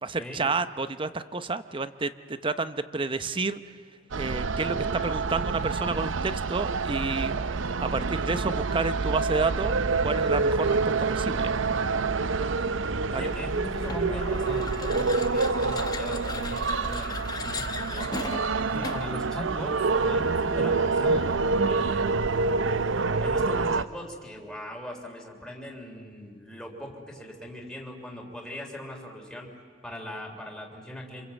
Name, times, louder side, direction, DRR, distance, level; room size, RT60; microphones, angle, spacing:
voice 1, 0.0-3.6 4.2-7.3 7.8-9.7 10.0-11.5 13.1-13.3 18.6-18.9, right 3 dB, 25° right, 12 dB, 0.7 m, -30 dB
sound 1, 4.1-23.8, right 4 dB, 90° right, 0.7 m, -27 dB
voice 2, 13.1-18.1 18.7-22.2 23.2-29.5 29.8-31.3, equal, 5° left, -1 dB, 3.3 m, -39 dB
sound 2, 13.8-19.2, left 3 dB, 20° left, 1.0 m, -37 dB
28.0 x 26.0 x 8.2 m, 2.1 s
head